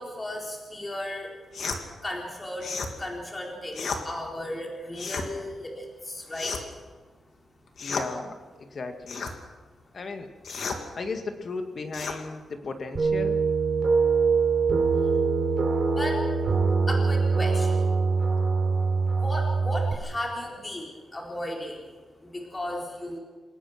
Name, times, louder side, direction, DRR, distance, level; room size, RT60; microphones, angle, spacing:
voice 1, 0.0-1.3 2.0-6.6 15.8-16.2 16.9-17.8 19.1-23.2, left 1 dB, 20° left, -1 dB, 4.3 m, -35 dB
sound 1, 1.5-1.8 2.6-2.9 3.7-4.0 4.9-5.3 6.3-6.8 7.8-8.1 9.1-9.4 10.4-10.8 11.9-12.2, left 4 dB, 60° left, 2.7 m, -32 dB
voice 2, 7.8-9.3 9.9-10.3 10.9-13.4, left 3 dB, 45° left, 6 dB, 2.2 m, -35 dB
sound 2, 12.9-19.9, right 4 dB, 35° right, 4.5 m, -23 dB
28.0 x 18.0 x 6.1 m, 1.4 s
wide cardioid pair, 135°, 0 cm